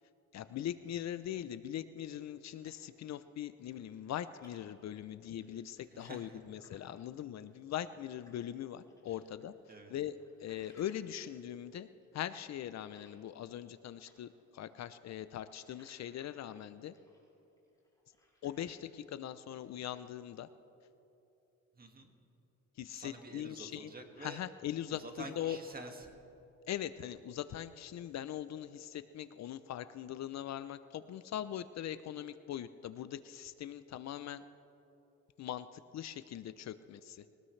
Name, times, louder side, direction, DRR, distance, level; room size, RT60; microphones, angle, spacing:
voice 1, 0.3-9.5 9.9-10.1 10.4-11.9 12.1-16.9 18.4-20.5 22.8-23.9 24.2-25.0 25.4-25.6 26.7-34.4 35.4-37.3, left 11 dB, 60° left, 13 dB, 0.6 m, -41 dB
sound 1, 2.4-3.4 3.7-8.6 8.9-13.8 14.0-19.2 19.5-20.2, left 1 dB, 10° left, 4.8 m, -68 dB
voice 2, 5.9-6.4 9.1-9.2 9.7-9.9 21.7-22.1 22.9-24.4 24.9-26.1, right 2 dB, 30° right, 3 dB, 2.0 m, -49 dB
22.5 x 18.5 x 3.3 m, 2.9 s
cardioid pair, 90°, 30 cm